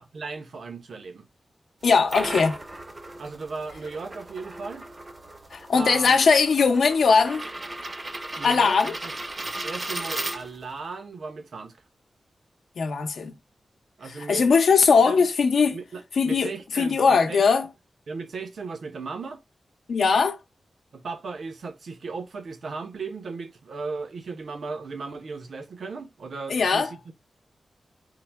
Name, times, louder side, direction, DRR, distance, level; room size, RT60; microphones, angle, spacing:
voice 1, 0.1-1.2 3.2-4.9 5.7-6.2 8.4-8.8 9.0-9.1 9.4-11.8 14.0-14.8 15.1-15.3 15.7-17.4 18.1-19.4 20.9-27.1, right 4 dB, 70° right, 0.8 m, -36 dB
voice 2, 1.8-2.6 5.5-7.5 8.4-9.0 12.8-13.4 14.0-15.8 16.2-17.7 19.9-20.4 26.5-26.9, left 5 dB, 80° left, 0.6 m, -20 dB
sound 1, 1.8-10.8, right 2 dB, 30° right, 0.6 m, -36 dB
3.8 x 2.2 x 4.4 m
wide cardioid pair, 115°, 0 cm